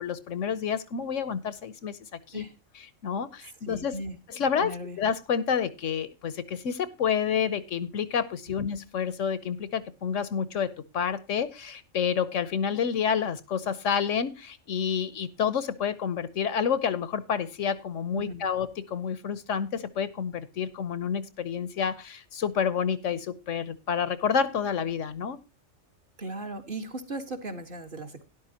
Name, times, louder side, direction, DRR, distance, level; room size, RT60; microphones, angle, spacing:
voice 1, 0.0-2.4 2.7-4.0 4.3-25.4, left 7 dB, 75° left, 15 dB, 1.3 m, -29 dB
voice 2, 3.6-4.2 4.6-5.0 8.5-8.6 18.2-18.5 26.2-28.2, right 1 dB, 45° right, 5 dB, 1.9 m, -37 dB
12.5 x 11.0 x 2.9 m, 0.26 s
omnidirectional pair, 1.3 m